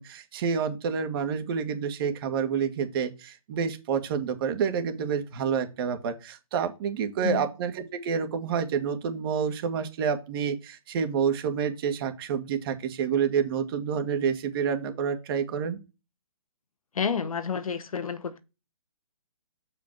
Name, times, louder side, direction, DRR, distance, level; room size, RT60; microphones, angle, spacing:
voice 1, 0.0-15.8, right 7 dB, 40° right, 1.8 m, -28 dB
voice 2, 16.9-18.4, left 6 dB, 70° left, 1.3 m, -29 dB
7.1 x 5.2 x 4.6 m
hypercardioid pair, 140°, 18 cm